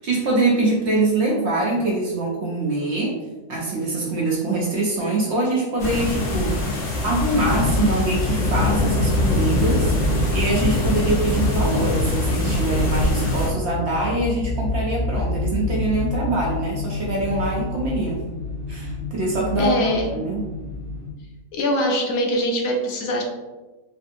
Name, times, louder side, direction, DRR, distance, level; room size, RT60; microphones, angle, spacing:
voice 1, 0.0-3.2 3.5-18.2 18.7-20.4, right 2 dB, 60° right, -3 dB, 0.8 m, -24 dB
sound 1, 5.8-13.5, left 1 dB, 60° left, 1.1 m, -23 dB
sound 2, 7.1-21.1, left 2 dB, 80° right, 1.1 m, -28 dB
voice 2, 19.6-20.1 21.5-23.2, equal, 80° left, 1 dB, 1.1 m, -22 dB
3.3 x 2.7 x 2.6 m, 1.2 s
omnidirectional pair, 1.5 m